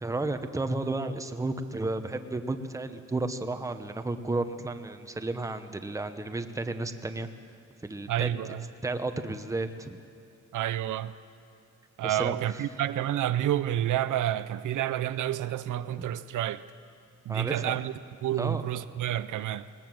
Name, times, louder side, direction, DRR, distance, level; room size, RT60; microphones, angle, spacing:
voice 1, 0.0-7.3 7.8-8.3 8.8-10.0 12.0-12.4 16.0-16.1 17.3-17.7 18.4-18.6, right 2 dB, 10° right, 0.9 m, -32 dB
voice 2, 8.1-8.6 10.5-11.1 12.0-16.6 17.3-17.9 18.2-19.7, right 12 dB, 80° right, 0.7 m, -29 dB
20.5 x 19.5 x 7.7 m
wide cardioid pair, 145°, 30 cm